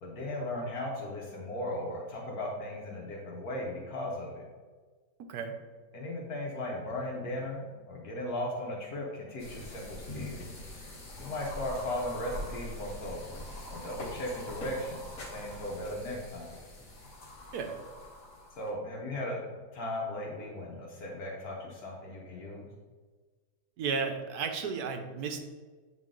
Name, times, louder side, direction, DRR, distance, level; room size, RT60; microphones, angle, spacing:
voice 1, 0.0-4.4 5.9-10.4 11.2-16.5 18.6-22.7, left 1 dB, 75° left, -2 dB, 1.5 m, -37 dB
sound 1, 9.4-18.7, left 1 dB, 60° left, 1.6 m, -43 dB
voice 2, 23.8-25.4, right 5 dB, 80° right, 6 dB, 1.2 m, -33 dB
7.5 x 3.8 x 3.7 m, 1.4 s
omnidirectional pair, 1.6 m